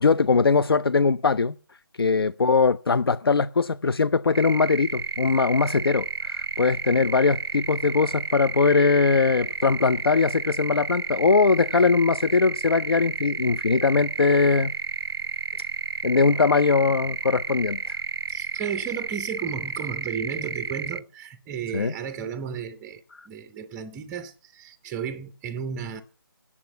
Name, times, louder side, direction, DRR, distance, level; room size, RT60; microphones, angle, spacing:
voice 1, 0.0-1.6 2.0-14.7 16.0-18.0 21.7-21.9 23.2-23.3, left 4 dB, 75° left, 0.5 m, -21 dB
sound 1, 4.3-21.0, right 5 dB, 80° right, 0.5 m, -32 dB
voice 2, 18.3-26.0, right 7 dB, 10° right, 0.5 m, -34 dB
8.6 x 7.2 x 7.8 m
figure-of-eight pair, 160°, 12 cm